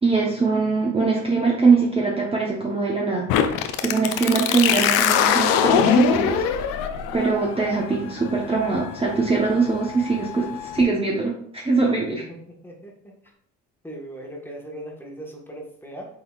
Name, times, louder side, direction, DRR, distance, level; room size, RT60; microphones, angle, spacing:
voice 1, 0.0-3.3 3.8-6.4 7.1-11.3 11.6-12.2, right 4 dB, 15° right, -3 dB, 0.9 m, -22 dB
sound 1, 3.3-10.8, left 9 dB, 80° left, 0.6 m, -23 dB
voice 2, 12.6-13.1 13.8-16.1, right 1 dB, 5° left, -2 dB, 1.4 m, -38 dB
5.5 x 3.8 x 2.4 m, 0.65 s
supercardioid pair, 75°, 33 cm